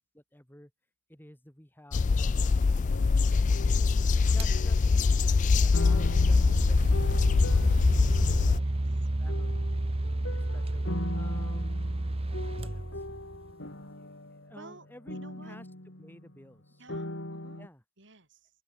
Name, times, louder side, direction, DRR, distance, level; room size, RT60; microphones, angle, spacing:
voice 1, 0.1-0.7 1.1-3.4 4.3-4.8 5.1-9.6 10.3-11.8 12.5-12.9 14.0-14.1 14.4-15.7 16.0-16.8 17.6-17.8, left 1 dB, 10° left, 3.1 m, -53 dB
sound 1, 1.9-8.6, left 4 dB, 40° left, 0.4 m, -23 dB
sound 2, 2.7-5.2 5.7-8.9 9.3-16.6 16.9-17.7, left 1 dB, 70° left, 4.5 m, -41 dB
voice 2, 4.1-4.5 8.0-8.8 14.5-15.6 16.8-17.6 18.0-18.5, right 2 dB, 65° right, 6.8 m, -53 dB
sound 3, 4.4-4.6 5.5-13.5, right 1 dB, 30° right, 0.9 m, -31 dB
open air
head